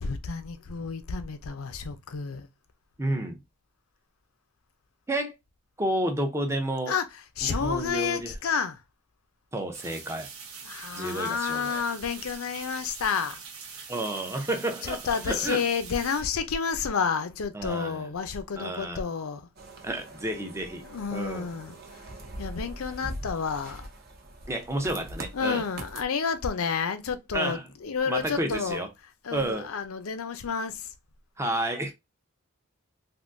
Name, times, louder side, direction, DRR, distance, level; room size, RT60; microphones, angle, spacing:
voice 1, 0.0-2.5 6.9-7.1 7.4-8.8 10.6-13.4 14.8-19.5 20.8-22.1 22.4-23.9 25.3-28.8 29.2-30.9, left 6 dB, 85° left, 0.6 m, -30 dB
voice 2, 3.0-3.4 5.1-5.3 5.8-6.9 7.4-8.3 9.5-10.3 10.9-11.8 13.9-15.6 17.5-18.1 18.5-19.0 19.8-20.8 21.1-21.5 24.5-25.6 27.3-27.6 28.1-28.9 29.3-29.7 31.4-31.9, right 1 dB, 15° right, 0.6 m, -30 dB
sound 1, 9.7-16.2, right 5 dB, 80° right, 1.0 m, -43 dB
sound 2, 19.6-26.0, right 1 dB, 45° right, 0.7 m, -42 dB
3.6 x 2.6 x 2.5 m
head